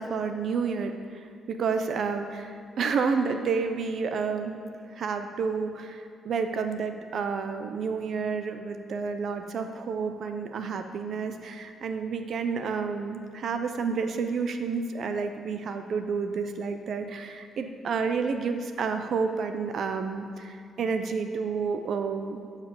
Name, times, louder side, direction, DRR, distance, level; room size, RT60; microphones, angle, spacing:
voice 1, 0.0-22.4, right 5 dB, 60° right, 7 dB, 0.7 m, -30 dB
12.0 x 5.0 x 6.9 m, 2.4 s
cardioid pair, 90°, 0 cm